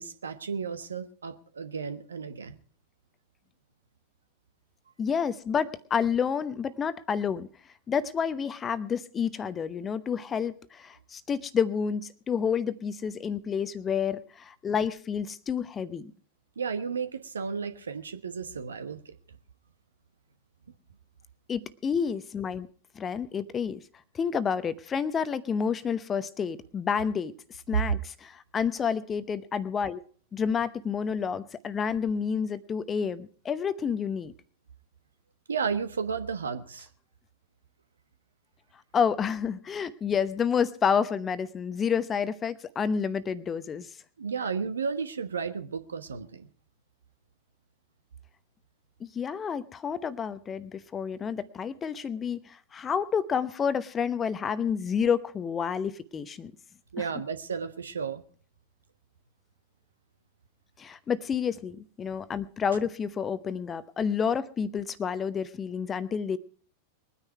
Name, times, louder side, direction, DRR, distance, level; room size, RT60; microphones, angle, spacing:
voice 1, 0.0-2.6 16.6-19.1 35.5-36.9 44.2-46.5 56.9-58.2, right 6 dB, 70° right, 1.2 m, -33 dB
voice 2, 5.0-7.5 7.9-16.1 21.5-22.7 22.9-23.8 24.1-30.0 30.3-34.3 38.9-43.9 49.0-56.5 57.0-57.1 60.8-66.4, left 7 dB, 20° left, 0.9 m, -29 dB
21.5 x 9.8 x 4.7 m
figure-of-eight pair, 90°, 0 cm